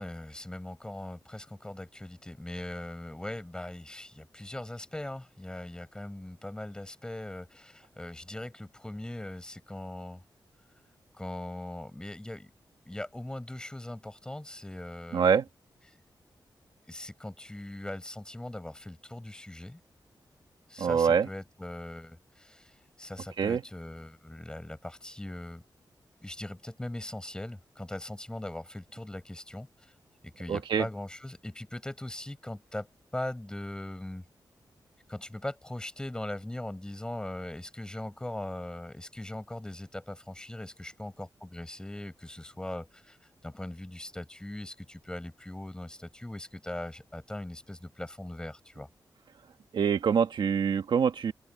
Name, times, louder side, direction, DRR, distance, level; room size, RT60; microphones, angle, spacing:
voice 1, 0.0-10.2 11.1-12.5 12.9-15.3 15.9-16.0 16.9-19.8 20.7-25.6 26.2-29.9 30.2-32.9 33.1-34.2 35.1-48.9, left 1 dB, 10° left, 4.6 m, -40 dB
voice 2, 15.1-15.4 20.8-21.3 23.4-23.6 30.5-30.9 49.7-51.3, right 7 dB, 75° right, 1.6 m, -25 dB
open air
wide cardioid pair, 150°, 8 cm